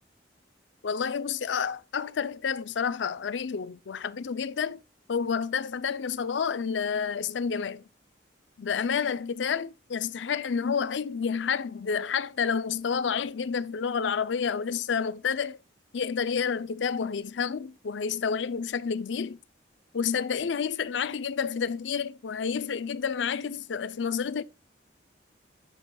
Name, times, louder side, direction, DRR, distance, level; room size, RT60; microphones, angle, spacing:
voice 1, 0.8-4.8 5.1-7.8 8.6-15.6 15.9-19.4 19.9-24.4, left 6 dB, 90° left, 0.5 m, -29 dB
7.9 x 7.1 x 2.3 m
head